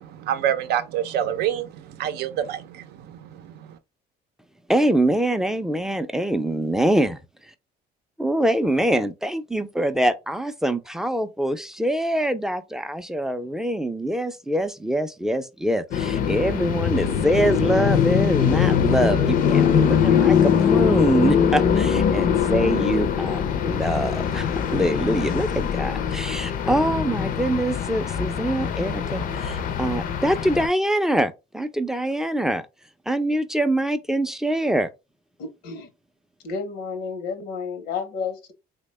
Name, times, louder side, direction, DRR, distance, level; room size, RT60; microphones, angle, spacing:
voice 1, 0.0-3.8, right 10 dB, 75° right, 0.5 m, -27 dB
voice 2, 4.7-7.5 8.2-32.7 33.1-34.9, right 1 dB, 5° right, 0.4 m, -24 dB
sound 1, 15.9-30.7, left 8 dB, 55° left, 0.5 m, -22 dB
voice 3, 35.4-35.9 36.4-38.5, left 5 dB, 85° left, 0.8 m, -31 dB
3.4 x 2.2 x 3.2 m
cardioid pair, 110°, 17 cm